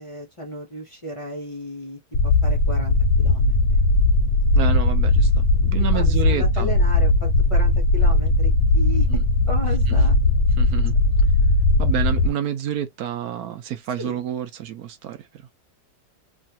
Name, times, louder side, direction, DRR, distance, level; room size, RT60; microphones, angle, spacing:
voice 1, 0.0-3.8 5.9-9.1 9.5-10.2 14.0-14.2, equal, 45° left, 0.4 m, -34 dB
sound 1, 2.1-12.3, left 2 dB, 65° left, 0.8 m, -18 dB
voice 2, 4.5-6.7 9.1-9.2 9.9-10.0 10.6-11.0 11.8-15.5, right 10 dB, 65° right, 1.0 m, -29 dB
3.1 x 2.3 x 2.7 m
omnidirectional pair, 1.9 m